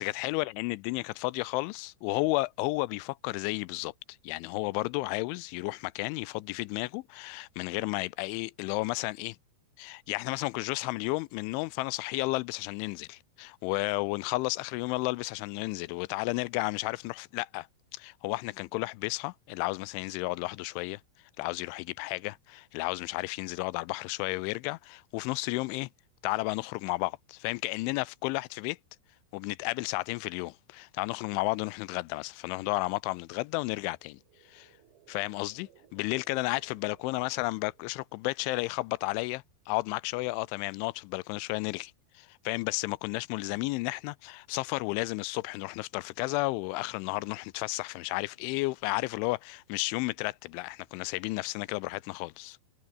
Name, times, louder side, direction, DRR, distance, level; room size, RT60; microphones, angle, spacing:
voice 1, 0.0-3.9 4.2-9.4 9.8-17.7 17.9-21.0 21.4-25.9 26.2-28.8 29.3-34.2 34.5-34.7 35.1-52.6, left 22 dB, 85° left, 2.9 m, -32 dB
sound 1, 33.9-38.1, right 11 dB, 70° right, 4.5 m, -62 dB
omnidirectional pair, 5.6 m